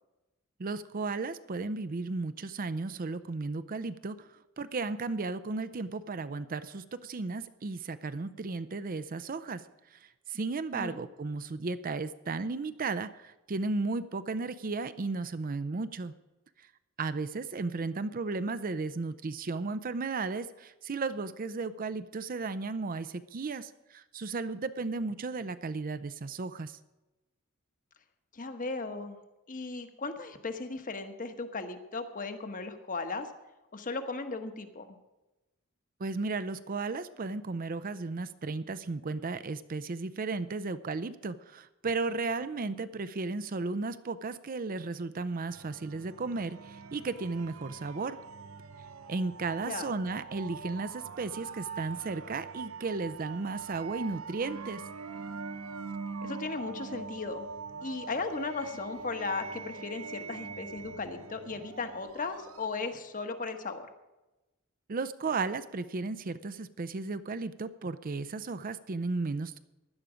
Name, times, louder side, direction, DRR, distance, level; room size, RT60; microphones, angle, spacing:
voice 1, 0.6-9.6 9.9-10.0 10.3-16.1 17.0-26.8 36.0-48.2 49.1-54.8 64.9-69.6, right 3 dB, 40° right, 13 dB, 0.5 m, -34 dB
voice 2, 28.3-29.2 29.5-33.3 33.7-35.0 49.6-49.9 56.2-57.5 57.8-63.9, left 3 dB, 40° left, 8 dB, 1.2 m, -36 dB
sound 1, 45.5-63.0, right 4 dB, 85° right, 0.7 m, -43 dB
16.0 x 11.0 x 5.0 m, 1.0 s
head